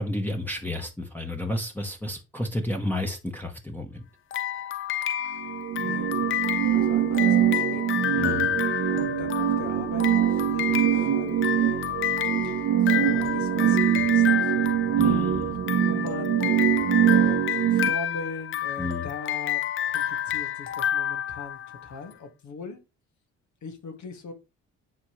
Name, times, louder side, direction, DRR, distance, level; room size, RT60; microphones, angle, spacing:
voice 1, 0.0-4.0 8.2-8.5 15.0-15.6 18.8-19.1, left 1 dB, 5° left, 1.1 m, -31 dB
sound 1, 4.3-22.0, left 11 dB, 45° left, 0.4 m, -29 dB
sound 2, 5.4-17.9, right 11 dB, 55° right, 0.8 m, -23 dB
voice 2, 5.8-6.4 6.7-8.0 8.9-12.2 12.4-19.6 19.9-22.8 23.6-24.3, left 4 dB, 70° left, 1.9 m, -40 dB
9.5 x 3.6 x 3.2 m
cardioid pair, 90°, 30 cm